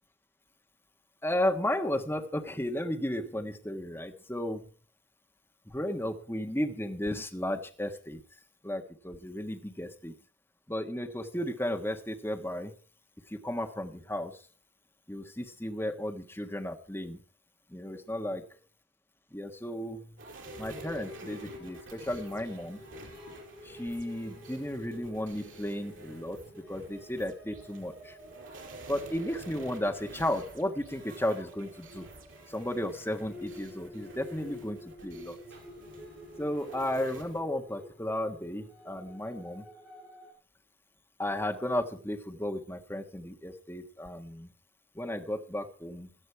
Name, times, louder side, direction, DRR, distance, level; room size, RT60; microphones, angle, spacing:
voice 1, 1.2-4.7 5.7-8.2 8.6-10.1 10.7-12.7 13.3-14.4 15.1-17.2 17.7-18.6 19.3-20.2 20.6-22.8 23.6-28.2 28.9-32.1 32.5-35.4 36.4-39.7 41.2-44.5 44.9-46.1, left 1 dB, 10° left, 3 dB, 1.4 m, -34 dB
sound 1, 20.2-37.4, right 2 dB, 75° right, 5.2 m, -49 dB
sound 2, 20.4-40.3, left 1 dB, 10° right, 7.4 m, -50 dB
17.0 x 12.0 x 4.6 m, 0.39 s
head